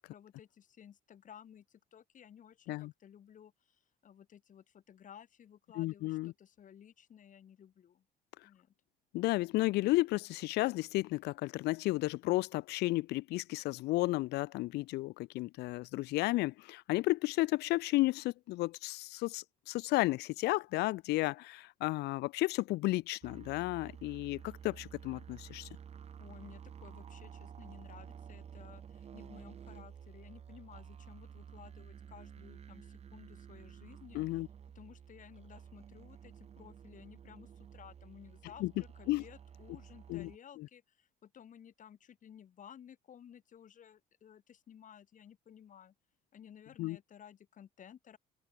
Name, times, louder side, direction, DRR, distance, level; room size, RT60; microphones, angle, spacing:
voice 1, 0.0-8.0 8.4-8.7 26.2-34.2 34.7-45.9 46.3-48.2, left 9 dB, 50° left, 7.7 m, -56 dB
voice 2, 5.8-6.3 9.1-25.7 34.1-34.5 38.6-38.7 39.1-39.2 40.1-40.3 40.6-40.7 46.8-47.0, left 19 dB, 75° left, 0.5 m, -33 dB
sound 1, 23.2-40.4, right 7 dB, 40° right, 1.3 m, -52 dB
cardioid pair, 110°, 17 cm